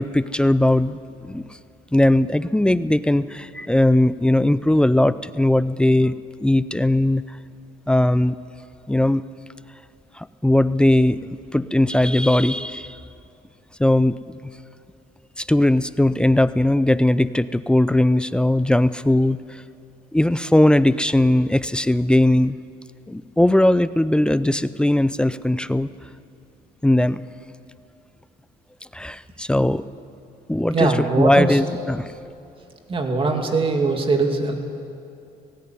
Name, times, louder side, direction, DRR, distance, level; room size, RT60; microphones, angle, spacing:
voice 1, 0.0-1.4 1.9-6.1 6.4-7.4 7.9-8.3 8.9-9.2 10.2-13.0 13.8-14.1 15.4-19.6 20.1-22.6 23.1-25.9 26.8-27.2 28.9-29.8 30.5-32.1 33.4-33.5, left 1 dB, 5° left, 15 dB, 0.5 m, -19 dB
voice 2, 30.7-31.6 32.9-34.5, right 3 dB, 30° right, 4 dB, 2.6 m, -21 dB
18.0 x 16.5 x 9.5 m, 2.6 s
cardioid pair, 110°, 17 cm